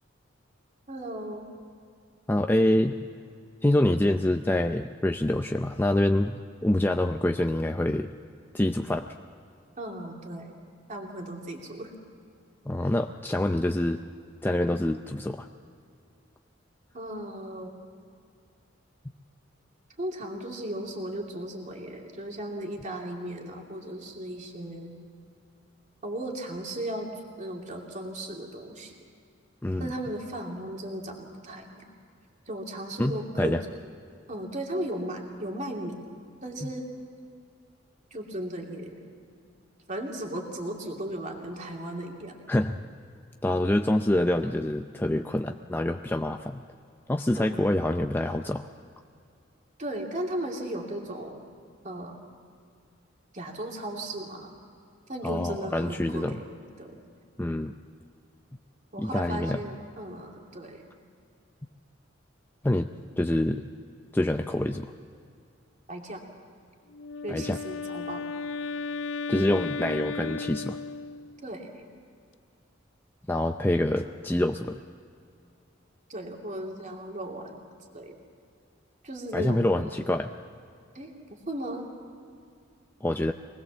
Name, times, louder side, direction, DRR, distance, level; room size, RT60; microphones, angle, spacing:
voice 1, 0.9-1.5 9.8-10.5 10.9-11.9 16.9-17.7 20.0-25.0 26.0-27.1 27.4-28.9 29.8-31.8 32.5-33.6 34.3-36.0 36.4-36.9 38.1-39.0 39.9-42.4 47.3-47.8 49.8-51.4 51.8-52.2 53.3-54.5 55.1-57.0 58.9-60.9 65.9-66.2 67.2-68.3 71.4-71.9 76.1-77.6 77.9-78.2 79.0-79.9 80.9-81.9, right 1 dB, 40° right, 1 dB, 2.8 m, -36 dB
voice 2, 2.3-3.0 3.6-8.1 8.5-9.1 12.7-14.0 14.4-15.5 29.6-29.9 33.0-33.6 42.5-42.8 43.4-46.6 47.1-48.6 55.2-56.4 57.4-57.7 59.0-59.6 62.6-62.9 63.2-63.6 64.1-64.9 67.3-67.6 69.3-70.8 73.3-74.8 79.3-80.3 83.0-83.3, left 1 dB, 10° left, 5 dB, 0.5 m, -26 dB
Wind instrument woodwind instrument, 66.9-71.5, left 4 dB, 70° left, 0.5 m, -35 dB
24.5 x 19.5 x 7.3 m, 2.3 s
head